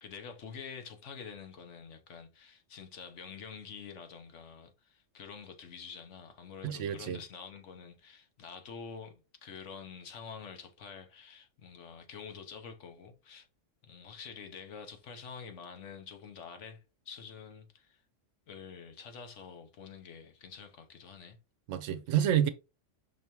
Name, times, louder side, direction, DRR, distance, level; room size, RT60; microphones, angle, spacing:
voice 1, 0.0-13.5 13.8-18.0 18.5-21.4, left 6 dB, 70° left, 1.2 m, -47 dB
voice 2, 6.6-7.2 21.7-22.5, right 10 dB, 75° right, 0.9 m, -28 dB
5.3 x 3.4 x 2.9 m
omnidirectional pair, 1.3 m